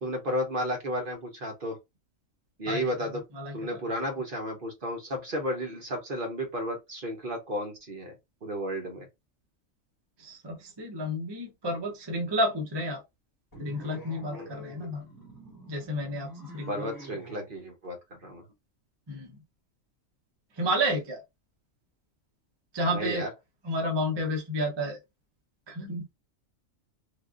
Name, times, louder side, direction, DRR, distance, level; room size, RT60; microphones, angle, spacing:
voice 1, 0.0-1.8 2.6-3.2 3.5-9.1 14.3-14.9 16.7-18.4 22.9-23.3, equal, 45° right, 1.0 m, -33 dB
voice 2, 3.4-3.8 10.2-13.0 13.6-15.1 15.7-16.9 19.1-19.3 20.6-21.2 22.7-23.3 23.6-25.0 25.7-26.1, equal, 25° right, 0.7 m, -31 dB
sound 1, 13.5-17.5, right 2 dB, 15° left, 1.1 m, -46 dB
3.3 x 2.5 x 2.4 m
omnidirectional pair, 1.4 m